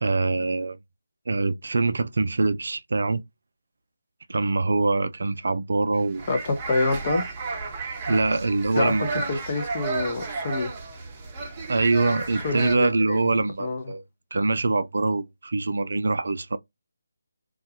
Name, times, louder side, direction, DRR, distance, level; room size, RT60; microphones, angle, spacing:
voice 1, 0.0-0.8 1.3-3.2 4.3-6.3 8.1-9.1 11.7-14.0 14.3-16.6, right 3 dB, 60° right, 0.3 m, -24 dB
sound 1, 6.0-12.8, right 3 dB, 20° right, 0.6 m, -33 dB
voice 2, 6.3-7.3 8.7-10.7 12.4-13.2 13.6-13.9, left 3 dB, 35° left, 0.6 m, -27 dB
2.4 x 2.2 x 2.7 m
figure-of-eight pair, 155°, 0 cm